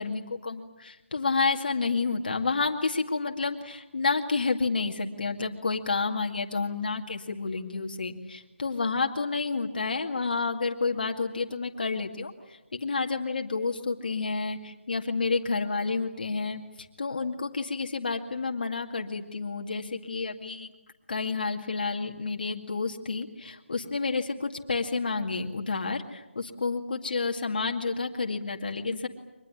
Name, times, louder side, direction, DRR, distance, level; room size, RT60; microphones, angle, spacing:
voice 1, 0.0-12.3 12.7-16.6 17.0-20.7 21.1-29.1, left 4 dB, 45° left, 3 dB, 2.2 m, -30 dB
24.5 x 20.5 x 9.9 m, 1.0 s
figure-of-eight pair, 175°, 7 cm